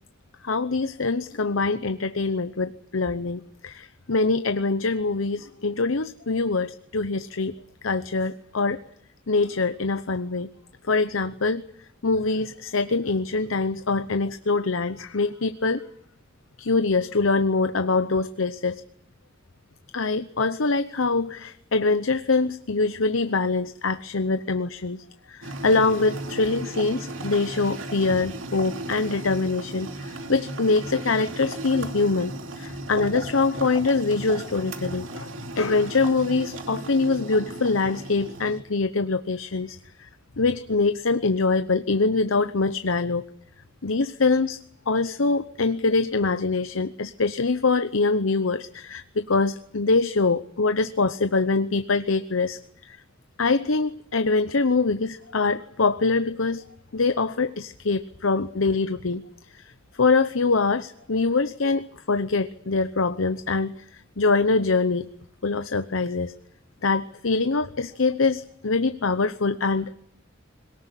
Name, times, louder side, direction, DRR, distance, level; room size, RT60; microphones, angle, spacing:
voice 1, 0.4-7.5 7.8-8.8 9.3-10.5 10.8-11.6 12.0-15.8 16.6-18.8 19.9-35.3 35.6-40.1 40.4-43.2 43.8-44.6 44.9-52.6 52.9-53.0 53.4-56.6 56.9-59.2 59.5-59.6 60.0-63.7 64.2-65.1 65.4-66.3 66.8-69.9, left 3 dB, 80° left, 11 dB, 0.9 m, -24 dB
sound 1, 25.4-38.6, right 1 dB, 75° right, 2.8 m, -36 dB
22.0 x 19.0 x 9.9 m, 0.72 s
head